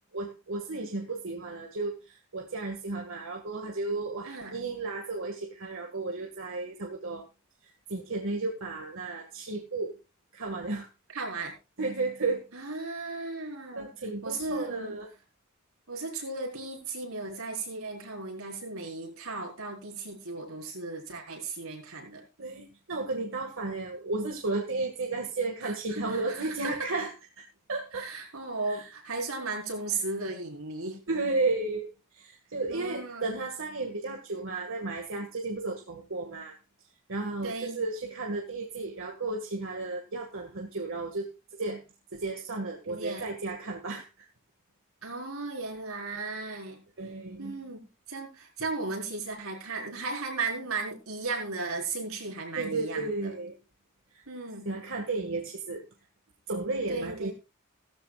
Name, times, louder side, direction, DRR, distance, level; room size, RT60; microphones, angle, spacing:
voice 1, 0.1-7.2 7.6-10.0 10.3-10.9 11.8-12.5 13.8-15.1 22.4-27.4 27.7-28.1 28.7-28.9 31.1-36.6 37.1-41.8 42.1-44.3 47.0-47.6 52.6-53.6 54.1-54.2 54.7-55.8 56.5-57.3, right 3 dB, 65° right, 1.9 m, -33 dB
voice 2, 4.2-4.5 11.1-11.5 12.5-13.9 14.2-15.0 15.9-22.2 25.6-26.9 27.9-31.0 32.7-33.3 37.4-37.8 42.9-43.3 45.0-46.8 47.4-53.3 54.3-54.7 56.9-57.3, right 3 dB, 85° right, 4.7 m, -36 dB
16.5 x 14.5 x 2.4 m
head